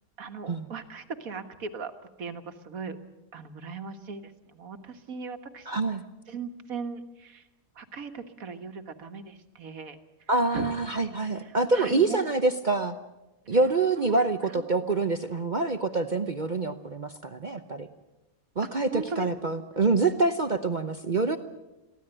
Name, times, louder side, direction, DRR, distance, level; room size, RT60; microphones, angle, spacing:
voice 1, 0.2-1.9 2.2-3.0 3.3-5.8 6.3-7.5 7.8-10.0 10.5-10.7 11.4-12.2 13.5-14.2 14.5-14.7 18.6-19.3, right 4 dB, 75° right, 7 dB, 1.9 m, -38 dB
voice 2, 5.7-6.0 10.3-13.0 13.5-17.9 18.6-21.4, right 3 dB, 40° right, 8 dB, 0.9 m, -26 dB
23.0 x 15.5 x 9.0 m, 1.0 s
omnidirectional pair, 1.5 m